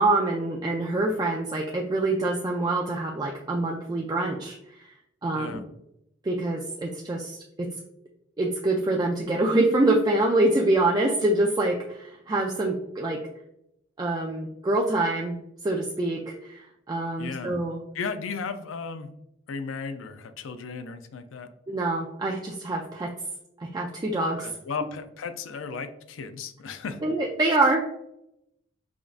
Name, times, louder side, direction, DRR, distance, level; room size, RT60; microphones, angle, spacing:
voice 1, 0.0-4.9 5.2-5.6 6.2-7.7 8.4-13.2 14.0-15.3 15.6-17.8 21.7-23.1 23.6-24.5 27.0-27.8, right 2 dB, 20° right, 0 dB, 0.3 m, -25 dB
voice 2, 17.2-17.5 17.9-19.1 19.5-21.5 24.4-27.0, left 5 dB, 85° left, 9 dB, 0.4 m, -35 dB
4.9 x 2.6 x 2.4 m, 0.80 s
head